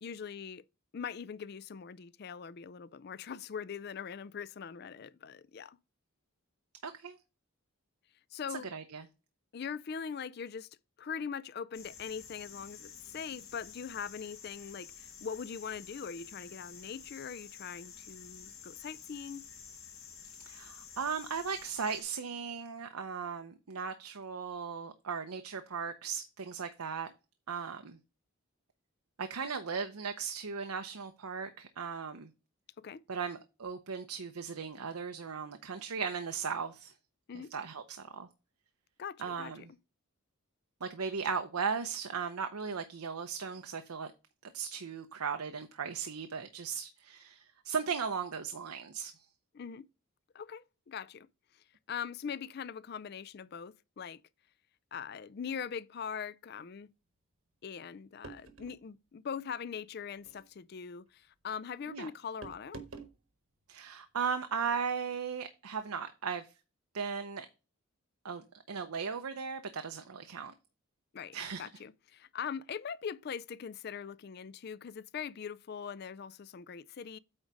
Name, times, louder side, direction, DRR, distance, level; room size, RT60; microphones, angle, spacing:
voice 1, 0.0-0.6 0.9-5.8 8.3-8.7 9.5-10.7 11.0-19.5 32.8-33.0 37.3-37.5 39.0-39.8 49.5-49.9 50.3-51.3 51.9-54.2 54.9-56.9 57.6-62.9 71.1-77.2, left 7 dB, 45° left, 0.4 m, -42 dB
voice 2, 6.8-7.2 8.5-9.1 20.5-27.1 27.5-28.0 29.2-32.3 33.1-36.9 37.3-38.3 39.2-39.7 40.8-44.1 44.4-49.1 61.9-62.1 63.7-66.5 66.9-67.5 68.2-70.5 71.3-71.7, right 6 dB, 90° right, 0.8 m, -37 dB
sound 1, 11.7-22.0, left 7 dB, 70° left, 1.8 m, -50 dB
sound 2, 58.2-58.8 60.2-60.5 62.4-63.2, right 4 dB, 70° right, 1.3 m, -47 dB
8.8 x 3.9 x 4.7 m
head